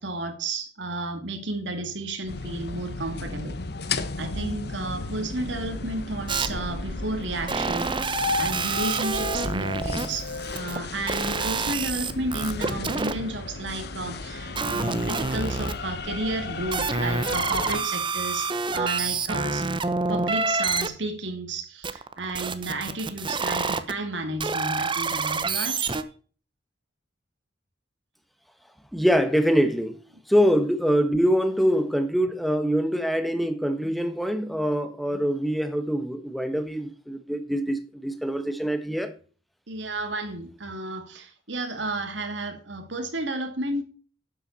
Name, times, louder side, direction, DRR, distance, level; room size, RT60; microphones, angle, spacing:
voice 1, 0.0-3.6 4.2-10.3 10.5-19.7 20.1-26.0 39.7-43.8, right 2 dB, 75° right, 2.5 m, -32 dB
sound 1, 2.3-17.8, left 3 dB, 60° left, 1.1 m, -34 dB
sound 2, 6.3-6.5 7.5-10.8 11.1-13.1 14.6-15.7 16.7-20.9 21.8-23.9 24.4-26.0, right 4 dB, 25° right, 0.9 m, -27 dB
voice 2, 28.9-30.0 30.3-39.1, equal, ahead, 1.4 m, -24 dB
12.0 x 8.1 x 4.2 m
head